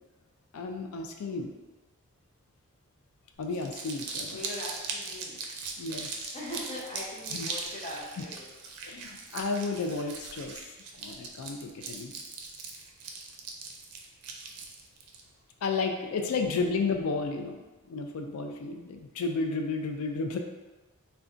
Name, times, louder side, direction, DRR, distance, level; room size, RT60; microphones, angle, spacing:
voice 1, 0.5-1.5 3.4-4.4 5.8-6.1 7.3-7.5 8.8-12.1 15.6-17.6 17.9-20.4, left 4 dB, 70° left, 4 dB, 0.4 m, -32 dB
Crumpling crinkling, 3.4-15.2, right 4 dB, 85° right, 0.4 m, -39 dB
voice 2, 4.3-5.4 6.3-8.5 8.7-9.1 16.3-16.8, left 1 dB, 30° left, -5 dB, 0.7 m, -41 dB
2.4 x 2.2 x 3.7 m, 1.2 s
head